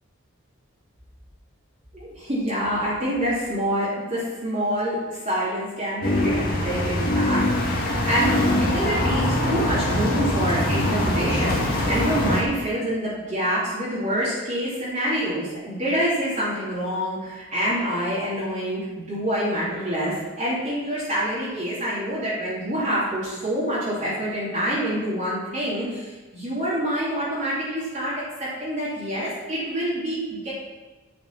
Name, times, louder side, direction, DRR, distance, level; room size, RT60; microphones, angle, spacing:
voice 1, 1.9-28.1 28.4-30.5, equal, 35° right, -10 dB, 3.0 m, -26 dB
sound 1, 6.0-12.4, left 1 dB, 40° left, 2.1 m, -23 dB
10.5 x 5.9 x 5.9 m, 1.2 s
head